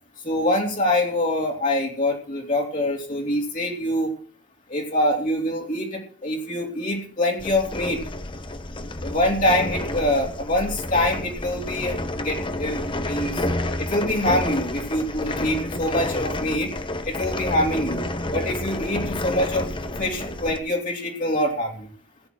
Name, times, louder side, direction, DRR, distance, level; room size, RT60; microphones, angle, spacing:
voice 1, 0.2-4.1 4.7-8.0 9.0-13.4 13.8-16.7 17.0-18.0 18.3-19.7 20.0-21.9, left 1 dB, 45° left, -1 dB, 3.0 m, -24 dB
sound 1, 7.4-20.6, left 1 dB, 25° left, 1.1 m, -30 dB
17.0 x 10.0 x 6.3 m, 0.43 s
head